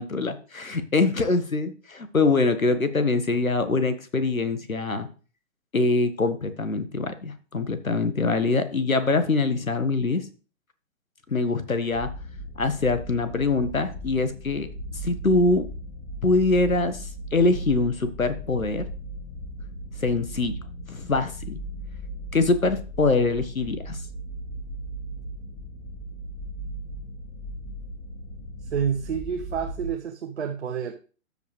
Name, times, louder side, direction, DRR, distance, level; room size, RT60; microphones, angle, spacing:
voice 1, 0.0-5.1 5.7-10.3 11.3-12.1 12.6-14.7 15.0-15.7 16.2-18.8 20.0-20.5 20.9-21.6 22.3-24.0, left 3 dB, 80° left, 11 dB, 1.5 m, -24 dB
sound 1, 11.9-29.9, right 1 dB, 35° left, 2.7 m, -37 dB
voice 2, 28.6-30.9, right 8 dB, 55° right, 4 dB, 1.1 m, -29 dB
13.5 x 5.4 x 3.3 m, 0.38 s
figure-of-eight pair, 130°, 40 cm